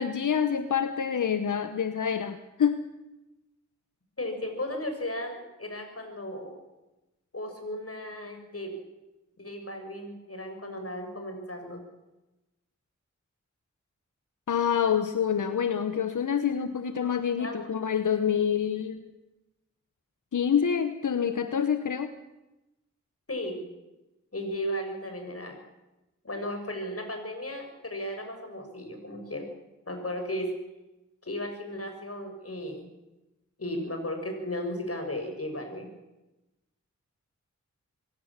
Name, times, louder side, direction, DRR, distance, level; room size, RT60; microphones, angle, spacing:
voice 1, 0.0-2.8 14.5-19.0 20.3-22.1, left 7 dB, 90° left, 10 dB, 1.0 m, -27 dB
voice 2, 4.2-6.5 7.3-8.8 9.4-11.8 17.0-17.1 17.4-17.7 23.3-23.6 24.3-25.5 26.2-29.4 29.9-30.5 31.2-32.9 33.6-35.9, left 1 dB, 50° left, 5 dB, 6.4 m, -35 dB
25.0 x 16.5 x 7.4 m, 1.0 s
cardioid pair, 45°, 30 cm